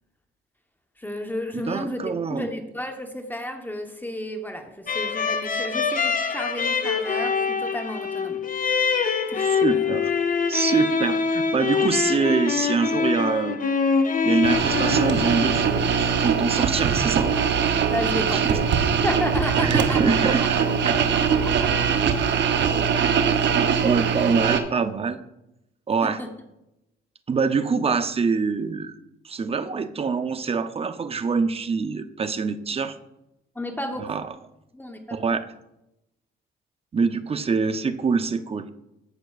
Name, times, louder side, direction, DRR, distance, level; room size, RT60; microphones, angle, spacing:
voice 1, 1.0-2.0 2.3-8.4 8.8-9.0 9.3-9.9 17.9-18.6 19.0-20.5 21.6-21.7 26.0-26.3 33.5-34.2 34.7-35.3, left 1 dB, 10° left, 4 dB, 1.0 m, -32 dB
voice 2, 1.5-2.5 9.4-10.1 10.5-13.6 14.2-17.3 18.3-18.6 19.6-20.4 20.8-21.0 23.5-25.2 25.9-26.2 27.3-28.9 29.2-33.0 34.1-34.2 35.1-35.4 36.9-38.7, right 5 dB, 30° right, 10 dB, 0.6 m, -25 dB
sound 1, 4.9-16.3, left 5 dB, 45° left, 0.7 m, -24 dB
sound 2, 14.4-24.6, right 6 dB, 65° right, 0.8 m, -22 dB
14.5 x 5.8 x 2.4 m, 0.89 s
cardioid pair, 90°, 20 cm